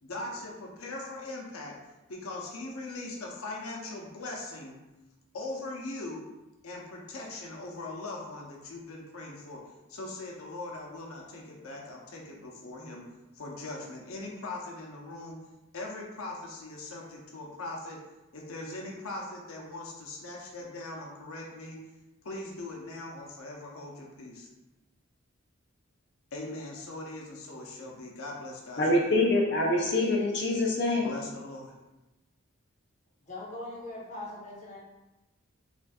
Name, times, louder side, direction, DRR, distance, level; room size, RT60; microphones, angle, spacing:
voice 1, 0.0-1.7 2.1-4.8 5.3-6.2 6.6-9.6 9.9-13.0 13.3-15.4 15.7-18.0 18.3-21.8 22.2-24.5 26.3-29.2 31.0-31.8, left 2 dB, 90° left, -1 dB, 0.8 m, -40 dB
voice 2, 28.8-31.1, left 2 dB, 50° left, -2 dB, 0.6 m, -25 dB
voice 3, 33.3-34.8, left 2 dB, 35° left, -5 dB, 1.0 m, -40 dB
6.0 x 2.6 x 2.3 m, 1.0 s
head